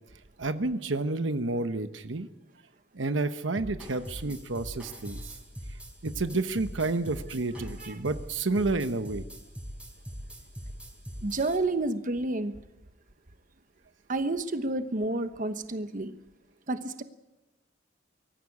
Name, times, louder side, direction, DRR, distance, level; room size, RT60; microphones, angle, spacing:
voice 1, 0.4-2.3 2.9-5.2 6.0-9.2, right 3 dB, 75° right, 10 dB, 1.1 m, -30 dB
sound 1, 3.6-11.6, equal, 5° right, 4.4 m, -42 dB
voice 2, 11.2-12.5 14.1-16.1 16.7-17.0, right 2 dB, 45° right, 9 dB, 1.1 m, -30 dB
23.5 x 14.5 x 8.6 m, 0.99 s
head